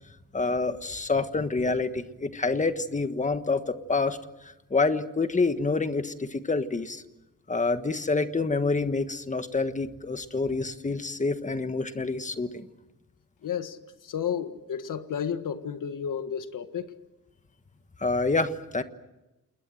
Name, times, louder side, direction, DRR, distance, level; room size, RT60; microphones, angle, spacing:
voice 1, 0.3-4.2 4.4-7.0 7.5-12.7 18.0-18.8, left 3 dB, 25° left, 1.4 m, -27 dB
voice 2, 13.4-16.9, left 8 dB, 75° left, 1.7 m, -32 dB
29.0 x 20.5 x 7.8 m
wide cardioid pair, 170°, 32 cm